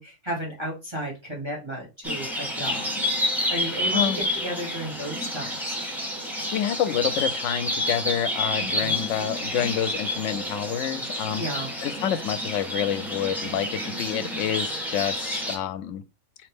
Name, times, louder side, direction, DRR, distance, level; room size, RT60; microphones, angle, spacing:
voice 1, 0.0-2.9 3.5-5.8 8.6-9.0 11.4-11.7, equal, 20° right, 1.5 m, -33 dB
sound 1, 2.0-15.6, left 1 dB, ahead, 1.1 m, -29 dB
voice 2, 3.9-4.2 6.5-11.4 11.8-16.0, left 10 dB, 75° left, 0.9 m, -28 dB
4.2 x 2.9 x 3.5 m
omnidirectional pair, 1.3 m